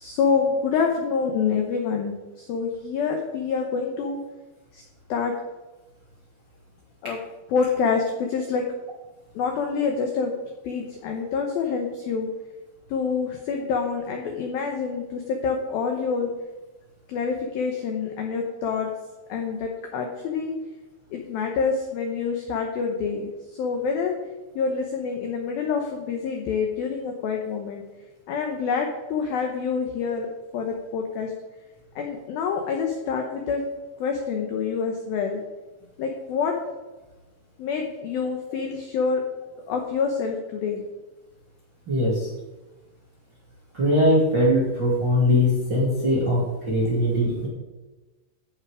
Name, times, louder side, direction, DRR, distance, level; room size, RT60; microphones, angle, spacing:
voice 1, 0.0-4.2 4.7-4.8 5.1-5.4 7.0-7.2 7.5-8.7 9.4-10.3 10.6-12.3 12.9-16.3 17.1-18.9 19.3-20.5 21.1-23.3 23.6-24.1 24.6-27.8 28.3-31.3 32.0-33.6 34.0-35.4 36.0-36.5 37.6-39.2 39.7-40.8, left 5 dB, 85° left, 2 dB, 2.0 m, -26 dB
voice 2, 41.9-42.3 43.7-47.5, left 1 dB, 35° right, -6 dB, 1.9 m, -21 dB
15.0 x 5.9 x 4.9 m, 1.1 s
omnidirectional pair, 5.7 m